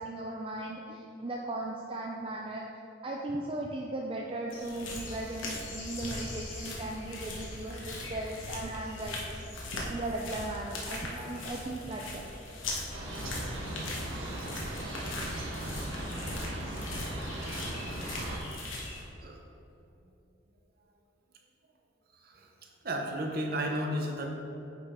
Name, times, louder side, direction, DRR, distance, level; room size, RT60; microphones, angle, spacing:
voice 1, 0.0-2.6 3.0-9.4 9.9-12.5, right 2 dB, 25° right, -1 dB, 0.4 m, -37 dB
sound 1, 4.5-19.0, left 1 dB, 80° left, 1.3 m, -39 dB
sound 2, 12.9-18.4, right 1 dB, 85° right, 1.3 m, -38 dB
voice 2, 22.8-24.3, equal, 50° right, 1 dB, 0.9 m, -33 dB
9.2 x 5.3 x 3.7 m, 2.9 s
head